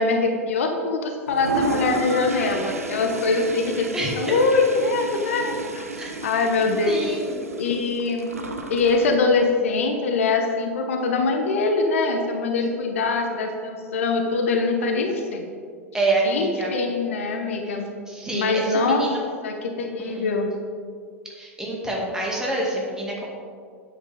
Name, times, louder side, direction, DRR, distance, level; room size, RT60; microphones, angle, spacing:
voice 1, 0.0-3.9 4.2-5.9 6.2-7.0 7.6-8.3 8.7-15.5 16.2-17.9 18.3-19.1 19.4-20.5, left 3 dB, 65° left, 4 dB, 1.0 m, -23 dB
Toilet flush, 1.3-9.1, right 2 dB, 80° right, 0.8 m, -32 dB
voice 2, 3.9-4.3 6.0-6.1 6.8-7.5 15.9-16.7 17.6-17.8 18.1-19.2 20.0-20.5 21.4-23.2, right 2 dB, 10° right, -3 dB, 2.2 m, -27 dB
9.6 x 7.9 x 3.6 m, 2.1 s
figure-of-eight pair, 90°, 8 cm